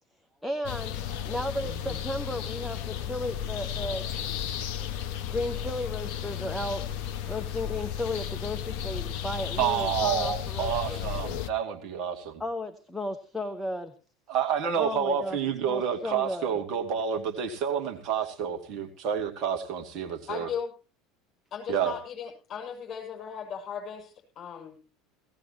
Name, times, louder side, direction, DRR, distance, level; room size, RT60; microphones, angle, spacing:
voice 1, 0.4-1.0 1.2-4.0 5.3-6.8 7.3-11.0 12.4-13.9 14.8-15.4 15.7-16.5, left 1 dB, 5° left, 5 dB, 1.1 m, -34 dB
sound 1, 0.6-11.5, left 9 dB, 55° left, 0.8 m, -34 dB
voice 2, 9.6-12.4 14.3-20.5 21.7-21.9, right 8 dB, 45° right, 3 dB, 2.4 m, -29 dB
voice 3, 20.3-20.7 21.5-24.8, left 7 dB, 40° left, 0 dB, 6.8 m, -37 dB
18.0 x 16.0 x 3.0 m, 0.35 s
figure-of-eight pair, 70°, 0 cm